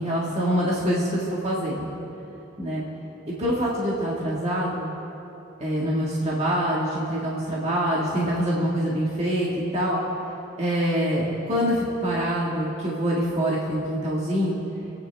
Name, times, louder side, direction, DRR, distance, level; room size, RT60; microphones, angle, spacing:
voice 1, 0.0-1.9 2.6-2.8 3.4-4.9 5.6-10.0 10.6-14.6, equal, 35° right, -6 dB, 1.9 m, -25 dB
27.5 x 9.4 x 3.5 m, 3.0 s
head